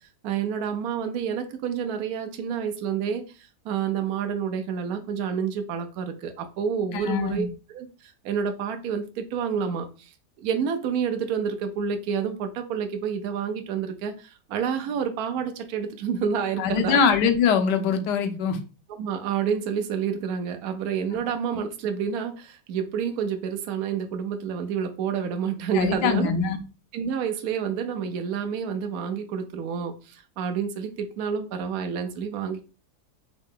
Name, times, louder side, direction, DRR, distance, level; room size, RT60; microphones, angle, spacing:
voice 1, 0.2-7.5 7.7-10.1 10.4-17.0 19.0-26.3 26.9-32.6, right 7 dB, 70° right, 1.1 m, -29 dB
voice 2, 6.9-7.5 16.6-18.6 25.7-26.6, left 6 dB, 85° left, 1.3 m, -23 dB
3.7 x 3.1 x 3.6 m
omnidirectional pair, 1.8 m